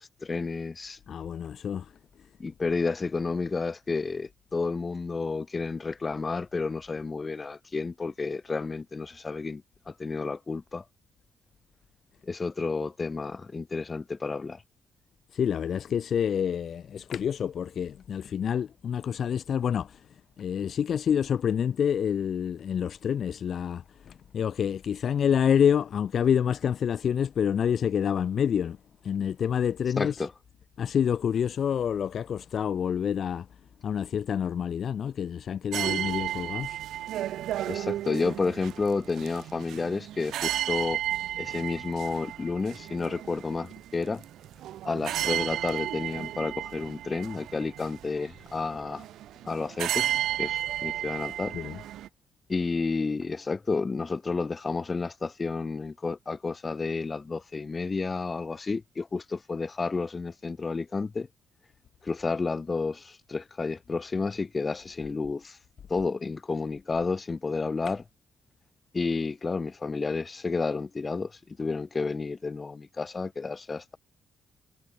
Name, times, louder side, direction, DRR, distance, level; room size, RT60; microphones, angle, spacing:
voice 1, 0.0-1.0 2.4-9.6 9.9-10.8 12.3-14.6 30.0-30.3 37.7-41.0 41.4-44.2 44.8-49.0 49.4-50.1 50.4-51.5 52.5-61.3 62.0-65.6 65.9-68.0 68.9-74.0, left 4 dB, 30° left, 1.7 m, -31 dB
voice 2, 1.1-1.9 15.3-20.1 20.4-28.8 29.0-30.3 30.8-33.5 33.8-36.8 51.5-51.8, left 8 dB, 55° left, 3.2 m, -27 dB
sound 1, 35.7-52.1, right 12 dB, 80° right, 0.9 m, -33 dB
cardioid pair, 90°, 0 cm